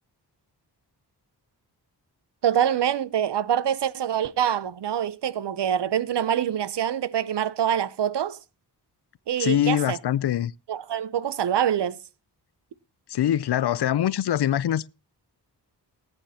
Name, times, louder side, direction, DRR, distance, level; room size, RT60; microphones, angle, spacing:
voice 1, 2.4-8.4 9.3-10.0 10.7-12.0, right 9 dB, 75° right, 0.7 m, -25 dB
voice 2, 9.4-10.5 13.1-14.9, left 11 dB, 70° left, 0.5 m, -23 dB
19.0 x 9.7 x 2.8 m
wide cardioid pair, 110°, 41 cm